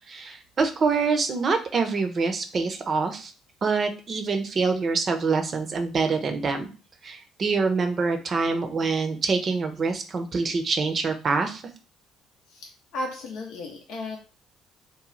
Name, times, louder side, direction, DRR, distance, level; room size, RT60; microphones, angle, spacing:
voice 1, 0.1-3.3 3.6-6.7 7.0-11.6, right 4 dB, 45° right, 6 dB, 0.6 m, -25 dB
voice 2, 12.5-14.2, left 2 dB, 65° left, 1 dB, 0.6 m, -35 dB
3.1 x 2.2 x 3.8 m, 0.35 s
hypercardioid pair, 50°, 0 cm